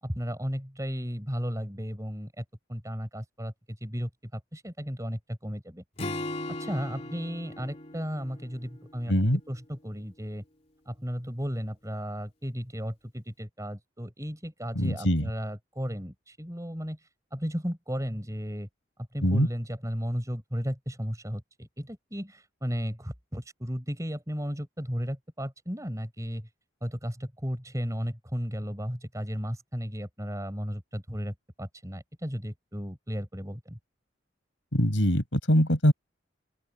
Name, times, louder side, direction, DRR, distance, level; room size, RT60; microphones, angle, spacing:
voice 1, 0.0-5.8 6.5-10.4 10.9-17.0 17.3-18.7 19.1-26.5 26.8-33.8, equal, 15° right, 7.1 m, -34 dB
Acoustic guitar / Strum, 6.0-9.5, left 2 dB, 35° left, 3.2 m, -38 dB
voice 2, 9.1-9.4 14.8-15.2 19.2-19.5 34.7-35.9, equal, 80° left, 6.9 m, -23 dB
open air
head